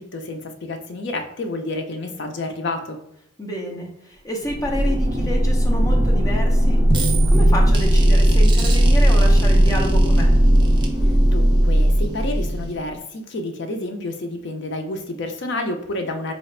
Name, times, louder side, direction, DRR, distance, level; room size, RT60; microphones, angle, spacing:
voice 1, 0.0-3.0 11.3-16.3, left 2 dB, 55° left, 5 dB, 0.5 m, -29 dB
voice 2, 3.4-6.8 7.3-10.3, equal, 15° left, 0 dB, 0.7 m, -29 dB
sound 1, 4.4-12.9, right 1 dB, 20° right, 0.4 m, -16 dB
3.9 x 2.4 x 3.2 m, 0.74 s
head